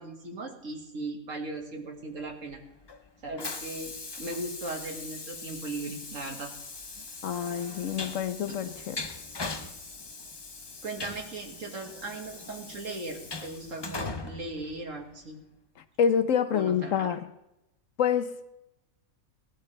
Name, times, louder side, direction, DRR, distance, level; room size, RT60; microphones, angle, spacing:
voice 1, 0.0-2.6 3.2-6.5 8.6-8.7 10.8-15.4 16.5-17.1, right 2 dB, 65° right, 1 dB, 2.4 m, -38 dB
Train, 2.2-15.4, left 3 dB, 25° left, 0.5 m, -41 dB
voice 2, 7.2-9.0 16.0-17.3 18.0-18.4, left 8 dB, 70° left, 11 dB, 1.1 m, -27 dB
17.5 x 12.0 x 3.3 m, 0.87 s
omnidirectional pair, 1.5 m